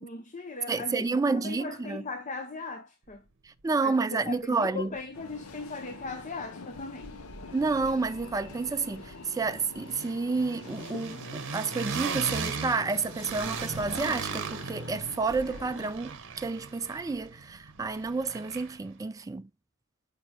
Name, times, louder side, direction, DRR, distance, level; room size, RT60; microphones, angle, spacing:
voice 1, 0.0-3.2 3.8-7.2, left 3 dB, 35° left, 0.7 m, -39 dB
voice 2, 0.7-2.0 3.6-4.9 7.5-19.5, right 4 dB, 15° right, 0.3 m, -30 dB
sound 1, 4.9-5.0 5.3-6.5 6.7-18.9, right 5 dB, 60° right, 0.9 m, -39 dB
sound 2, 5.1-15.9, left 4 dB, 75° left, 0.7 m, -46 dB
7.0 x 5.1 x 2.9 m
head